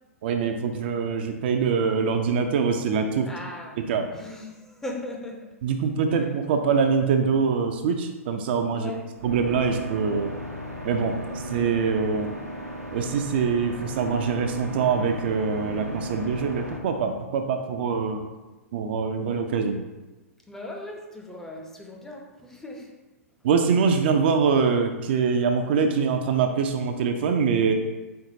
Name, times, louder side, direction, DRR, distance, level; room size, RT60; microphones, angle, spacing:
voice 1, 0.2-3.3 3.8-4.1 5.6-8.9 9.2-10.3 10.8-12.3 12.9-18.2 18.7-19.8 23.4-27.7, right 5 dB, 45° right, 5 dB, 0.4 m, -24 dB
voice 2, 3.3-3.8 4.1-5.5 6.1-6.3 8.8-9.1 20.5-22.9, left 1 dB, 5° left, 0 dB, 0.5 m, -38 dB
sound 1, 9.2-16.8, right 1 dB, 90° right, 0.6 m, -35 dB
4.5 x 3.8 x 2.7 m, 1.1 s
figure-of-eight pair, 105°, 8 cm